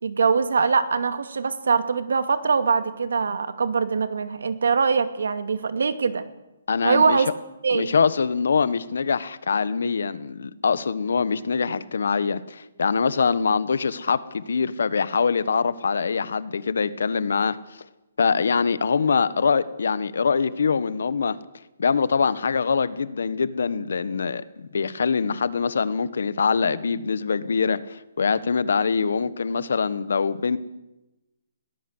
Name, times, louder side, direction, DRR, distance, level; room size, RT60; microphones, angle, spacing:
voice 1, 0.0-6.3 6.8-7.3 7.6-7.9, right 5 dB, 75° right, 10 dB, 2.3 m, -22 dB
voice 2, 6.7-7.2 7.7-17.6 18.2-21.4 21.8-30.6, left 5 dB, 65° left, 16 dB, 1.3 m, -24 dB
21.5 x 18.5 x 8.1 m, 0.99 s
hypercardioid pair, 180°, 0 cm